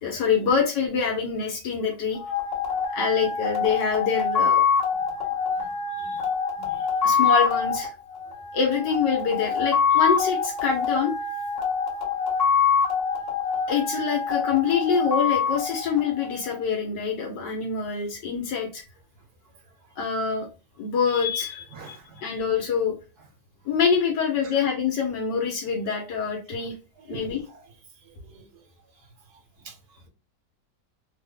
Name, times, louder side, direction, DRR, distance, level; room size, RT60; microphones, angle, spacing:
voice 1, 0.0-2.2 2.9-4.6 6.0-6.3 6.7-7.9 8.5-11.1 13.7-18.8 20.0-20.5 20.8-21.7 22.2-22.9 23.6-26.7 27.1-27.4, left 6 dB, 80° left, 1.4 m, -25 dB
sound 1, 2.1-16.6, left 6 dB, 35° left, 1.4 m, -25 dB
voice 2, 21.7-22.2 27.1-27.3 28.3-28.5 29.6-29.7, right 4 dB, 70° right, 1.3 m, -42 dB
3.4 x 2.1 x 3.6 m
omnidirectional pair, 1.8 m